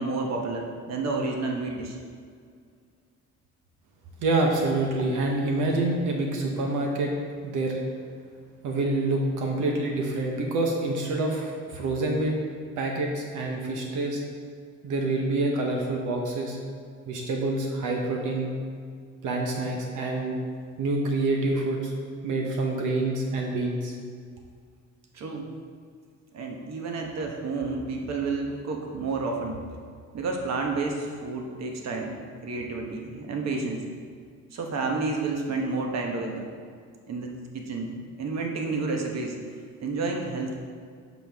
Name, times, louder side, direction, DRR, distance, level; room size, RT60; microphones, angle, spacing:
voice 1, 0.0-2.0 25.1-25.5 26.3-29.6 30.1-32.2 32.4-33.8 34.5-36.5 37.1-39.3 39.8-40.5, right 3 dB, 60° right, 1 dB, 1.1 m, -30 dB
voice 2, 4.2-7.1 7.4-7.8 8.6-12.3 12.8-14.2 14.8-16.6 17.1-18.5 19.2-20.4 20.8-21.9 22.2-24.0, right 2 dB, 85° right, 0 dB, 1.0 m, -27 dB
7.0 x 6.0 x 3.5 m, 2.1 s
cardioid pair, 90°, 30 cm